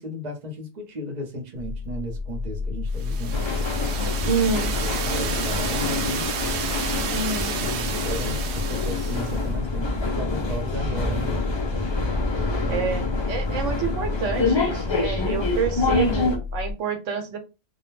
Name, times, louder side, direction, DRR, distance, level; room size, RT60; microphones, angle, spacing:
voice 1, 0.0-3.5 4.2-4.5 4.8-6.3 7.6-11.4 12.6-13.2, equal, 40° right, 0.8 m, -35 dB
sound 1, 1.6-16.7, left 4 dB, 70° left, 0.8 m, -31 dB
sound 2, 3.0-9.5, right 6 dB, 70° right, 0.8 m, -31 dB
sound 3, 3.3-16.4, left 3 dB, 50° left, 0.3 m, -27 dB
voice 2, 4.3-4.7 7.1-7.5 12.7-17.4, right 5 dB, 85° right, 1.0 m, -28 dB
2.3 x 2.2 x 3.1 m
omnidirectional pair, 1.3 m